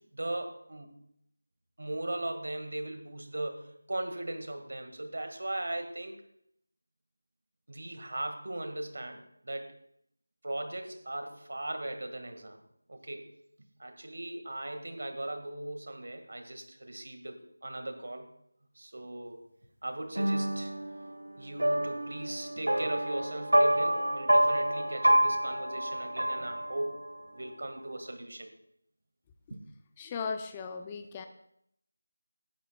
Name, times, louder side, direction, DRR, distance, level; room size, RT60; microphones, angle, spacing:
voice 1, 0.1-0.9 1.8-6.3 7.7-9.7 10.4-12.6 12.9-13.3 13.8-18.3 18.7-19.5 19.8-20.7 21.4-27.0 27.3-28.5 29.5-29.6, right 1 dB, 65° right, 6 dB, 1.7 m, -38 dB
sound 1, 20.1-27.1, right 1 dB, 85° right, 1.4 m, -28 dB
voice 2, 30.0-31.3, left 5 dB, 15° left, 7 dB, 0.5 m, -37 dB
17.5 x 11.5 x 2.3 m, 0.71 s
figure-of-eight pair, 170°, 0 cm